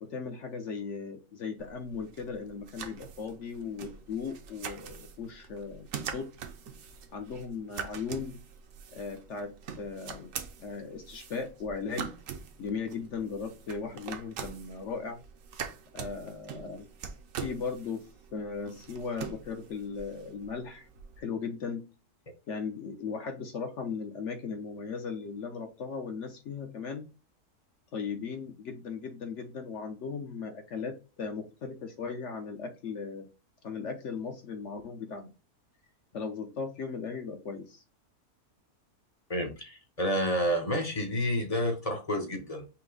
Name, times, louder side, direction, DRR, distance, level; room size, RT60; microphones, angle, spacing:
voice 1, 0.0-5.9 6.1-6.3 7.1-8.4 8.9-10.3 10.6-12.1 12.6-15.2 15.9-16.9 17.4-18.0 18.3-20.9 21.2-21.8 22.5-27.0 27.9-33.3 33.6-35.3 36.1-37.8, left 5 dB, 60° left, 0.9 m, -37 dB
sound 1, 1.6-21.2, right 7 dB, 65° right, 1.0 m, -44 dB
voice 2, 39.3-42.6, equal, 35° left, 0.6 m, -29 dB
5.7 x 2.1 x 3.8 m
omnidirectional pair, 1.6 m